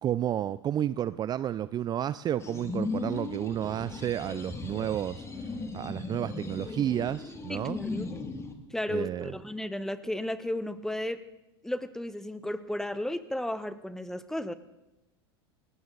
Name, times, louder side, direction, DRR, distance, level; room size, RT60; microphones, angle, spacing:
voice 1, 0.0-5.5 5.7-7.8 8.9-9.3, right 11 dB, 30° right, 16 dB, 0.5 m, -31 dB
sound 1, 2.4-8.5, left 3 dB, 20° left, 2.2 m, -37 dB
voice 2, 7.5-8.2 8.7-11.2 11.6-14.5, left 1 dB, 5° left, 13 dB, 1.2 m, -34 dB
19.0 x 18.0 x 4.0 m, 0.96 s
hypercardioid pair, 95°, 13 cm